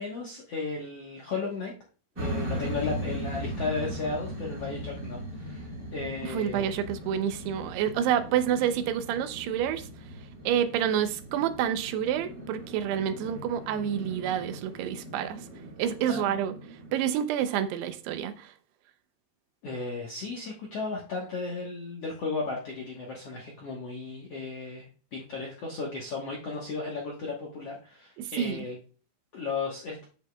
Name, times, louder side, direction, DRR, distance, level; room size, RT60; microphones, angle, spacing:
voice 1, 0.0-1.7 2.2-6.7 16.1-16.4 19.6-28.8 29.3-30.0, left 4 dB, 70° left, 1.5 m, -35 dB
sound 1, 2.2-17.0, equal, 45° right, 1.5 m, -39 dB
voice 2, 6.2-9.9 10.5-15.5 15.8-16.5 16.9-18.5 28.2-28.6, right 9 dB, 85° right, 2.8 m, -28 dB
10.0 x 8.3 x 2.3 m
omnidirectional pair, 4.7 m